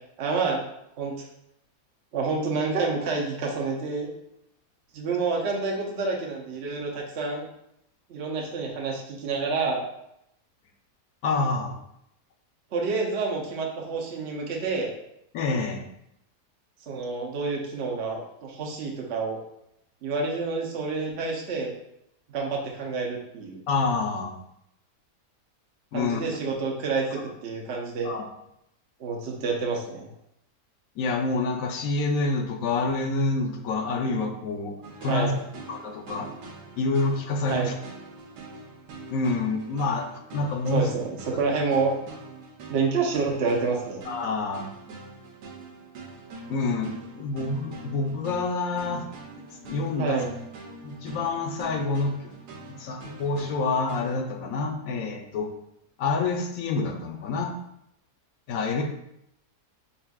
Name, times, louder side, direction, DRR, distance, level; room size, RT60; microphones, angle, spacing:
voice 1, 0.2-0.6 1.0-1.2 2.1-4.1 4.9-7.5 8.1-9.8 12.7-14.9 16.9-19.4 20.0-21.7 22.3-23.6 25.9-28.1 29.0-30.1 35.1-35.4 37.5-37.7 40.7-41.9 42.7-44.0 50.0-50.3, right 4 dB, 55° right, -2 dB, 0.8 m, -28 dB
voice 2, 11.2-11.8 15.3-15.9 23.7-24.3 25.9-26.4 28.0-28.3 31.0-34.7 35.0-35.3 35.7-36.3 36.8-37.7 39.1-40.1 40.3-41.0 44.0-44.7 46.5-49.0 49.3-50.2 50.8-52.2 52.7-55.5 56.0-57.5 58.5-58.8, left 3 dB, 65° left, 3 dB, 1.0 m, -27 dB
sound 1, 34.8-54.2, right 3 dB, 75° right, 1.2 m, -44 dB
4.1 x 4.0 x 2.3 m, 0.80 s
omnidirectional pair, 1.8 m